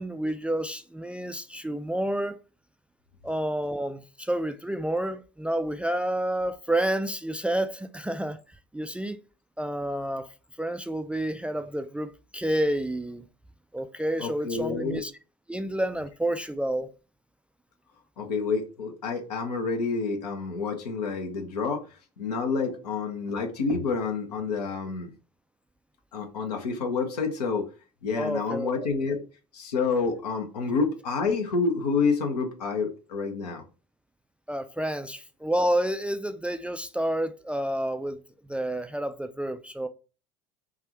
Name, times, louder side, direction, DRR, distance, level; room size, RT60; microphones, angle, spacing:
voice 1, 0.0-2.4 3.2-8.4 8.7-9.2 9.6-10.3 10.6-13.3 13.7-15.1 15.5-16.9 28.2-28.7 34.5-39.9, right 1 dB, 5° right, 0.3 m, -29 dB
voice 2, 14.2-15.0 18.2-25.1 26.1-27.7 28.0-29.2 29.5-33.6, left 4 dB, 80° left, 0.9 m, -28 dB
3.5 x 2.5 x 4.3 m
figure-of-eight pair, 65°, 20 cm